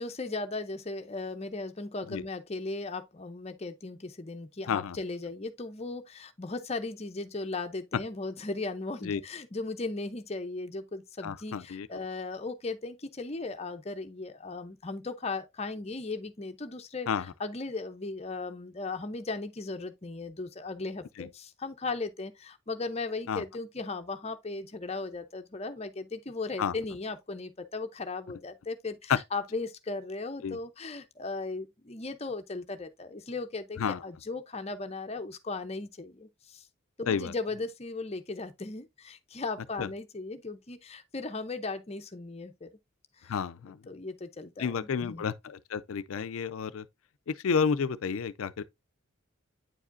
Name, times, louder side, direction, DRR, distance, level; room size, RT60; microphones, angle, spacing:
voice 1, 0.0-36.6 37.0-42.7 43.2-43.3 43.9-45.2, left 3 dB, 30° left, 0.6 m, -37 dB
voice 2, 11.2-11.9 17.1-17.2 21.2-21.3 23.3-23.4 26.6-26.7 29.1-29.2 30.4-30.6 33.8-34.0 37.1-37.3 39.8-39.9 43.3-43.8 44.6-46.8 47.3-48.6, left 6 dB, 75° left, 0.4 m, -30 dB
9.1 x 4.9 x 2.5 m
head